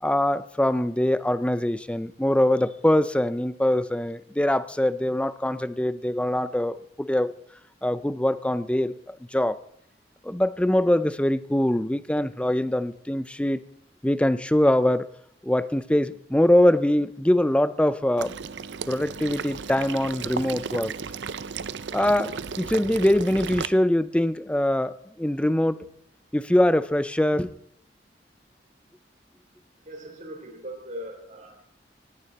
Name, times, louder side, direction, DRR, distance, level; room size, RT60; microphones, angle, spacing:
voice 1, 0.0-7.3 7.8-9.6 10.2-13.6 14.0-15.1 15.4-18.3 18.9-20.9 21.9-25.9 26.3-27.5, left 1 dB, 5° left, 15 dB, 0.5 m, -23 dB
Water / Liquid, 18.2-23.7, right 6 dB, 80° right, 0.6 m, -34 dB
voice 2, 29.8-31.6, equal, 45° right, 2 dB, 3.9 m, -39 dB
18.0 x 16.5 x 4.1 m, 0.70 s
head